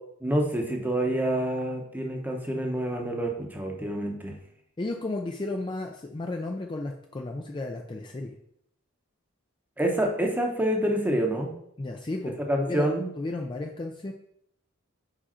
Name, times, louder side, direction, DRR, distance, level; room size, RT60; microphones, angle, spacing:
voice 1, 0.2-4.4 9.8-11.5 12.4-13.1, right 1 dB, 10° right, 2 dB, 0.8 m, -27 dB
voice 2, 4.8-8.4 11.8-12.9 13.2-14.1, left 2 dB, 20° left, 2 dB, 0.4 m, -33 dB
4.9 x 4.9 x 4.3 m, 0.72 s
head